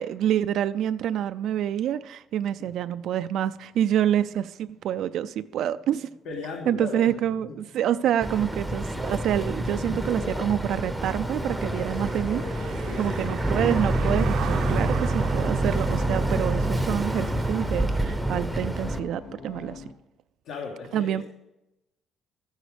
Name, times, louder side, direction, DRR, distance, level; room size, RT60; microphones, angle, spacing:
voice 1, 0.0-6.1 6.7-19.8 20.9-21.2, right 10 dB, 60° right, 12 dB, 0.4 m, -27 dB
sound 1, 3.7-19.9, left 3 dB, 40° left, 1.2 m, -43 dB
voice 2, 6.2-7.1 7.4-7.5 12.9-13.2 20.4-21.2, left 4 dB, 75° left, 0 dB, 1.7 m, -36 dB
Boat Water vehicle, 8.2-19.0, right 1 dB, ahead, 0.7 m, -27 dB
Car passing by / Engine, 10.9-17.7, right 10 dB, 80° right, 0.7 m, -40 dB
13.5 x 10.0 x 5.1 m, 0.94 s
cardioid pair, 180°, 0 cm